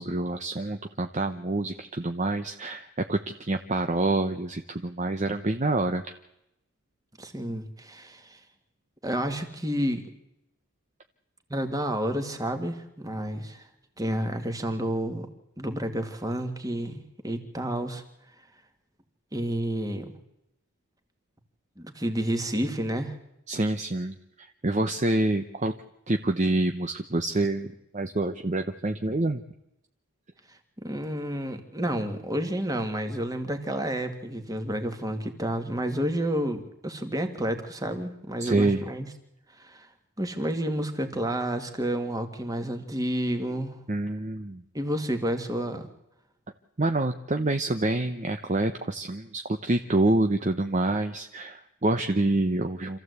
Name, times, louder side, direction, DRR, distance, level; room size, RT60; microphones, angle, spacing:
voice 1, 0.0-6.1 23.5-25.7 26.1-29.4 38.4-38.8 43.9-44.6 46.8-53.0, right 2 dB, 35° right, 7 dB, 0.8 m, -27 dB
voice 2, 7.2-8.4 9.0-10.0 11.5-13.6 14.0-15.3 15.6-18.0 19.3-20.2 21.8-23.2 30.8-39.1 39.6-39.9 40.2-43.8 44.7-45.9, right 1 dB, 15° right, 6 dB, 2.0 m, -30 dB
27.0 x 14.5 x 8.2 m, 0.86 s
head